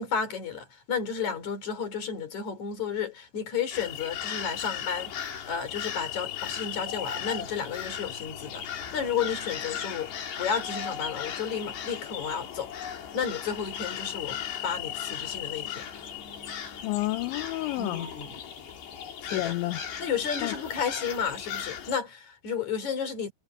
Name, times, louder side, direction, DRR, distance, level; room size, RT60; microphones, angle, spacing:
voice 1, 0.0-10.1 10.4-12.7 13.1-15.8 17.8-18.4 19.3-19.5 20.0-23.3, left 7 dB, 40° left, 4.5 m, -32 dB
eerie forest, 3.7-22.0, left 9 dB, 60° left, 4.9 m, -37 dB
voice 2, 16.8-18.1 19.2-19.8 20.4-20.5, left 18 dB, 80° left, 2.8 m, -30 dB
omnidirectional pair, 5.7 m